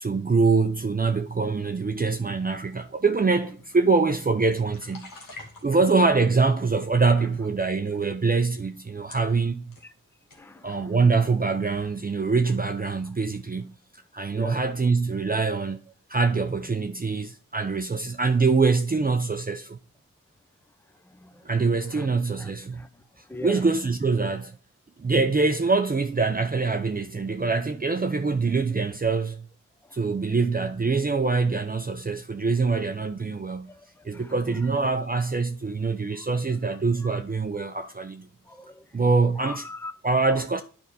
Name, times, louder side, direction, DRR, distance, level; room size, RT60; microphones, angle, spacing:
voice 1, 0.0-5.1 5.6-9.8 10.6-13.7 14.1-15.8 16.1-19.8 21.4-22.8 23.4-24.5 25.0-29.5 29.9-33.7 34.0-38.3 38.9-39.6 40.0-40.6, right 4 dB, 25° right, 0.6 m, -24 dB
sound 1, 2.8-6.1 6.7-7.3 8.0-8.1 8.8-8.9 9.1-9.9 10.3-10.5, left 2 dB, 85° left, 1.7 m, -48 dB
voice 2, 5.4-5.8 7.2-7.3 9.8-9.9 10.3-11.0 14.3-14.6 21.0-22.1 22.4-23.7 29.8-30.0 33.7-34.7 36.1-36.3 37.0-37.2 38.5-38.9 39.3-39.9 40.3-40.4, left 2 dB, 5° left, 0.7 m, -42 dB
9.2 x 4.9 x 4.1 m
cardioid pair, 50°, 32 cm